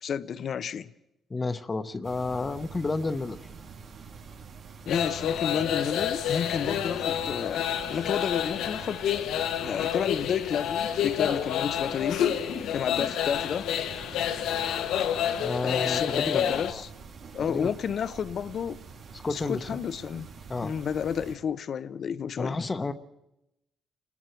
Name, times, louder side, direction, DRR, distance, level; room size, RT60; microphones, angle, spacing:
voice 1, 0.0-0.9 4.9-9.0 9.6-12.2 12.7-13.7 15.6-16.9 17.3-18.8 19.3-20.3 20.6-22.6, left 7 dB, 60° left, 0.7 m, -31 dB
voice 2, 1.3-3.4 15.4-16.8 17.4-17.7 19.1-19.8 20.5-20.7 22.4-22.9, left 3 dB, 30° left, 1.0 m, -31 dB
sound 1, 2.0-21.4, right 5 dB, 70° right, 5.1 m, -46 dB
sound 2, 4.9-16.7, left 9 dB, 85° left, 1.2 m, -29 dB
29.5 x 20.0 x 4.6 m
cardioid pair, 90°, 0 cm